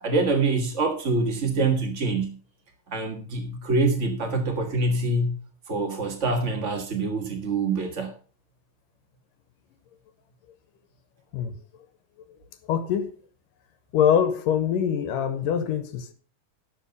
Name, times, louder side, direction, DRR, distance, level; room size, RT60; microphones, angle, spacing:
voice 1, 0.0-2.4 2.9-5.3 5.7-8.1, right 3 dB, 55° right, 0.7 m, -25 dB
voice 2, 12.7-13.1 13.9-16.1, left 8 dB, 85° left, 2.7 m, -23 dB
12.0 x 7.3 x 5.4 m
omnidirectional pair, 3.8 m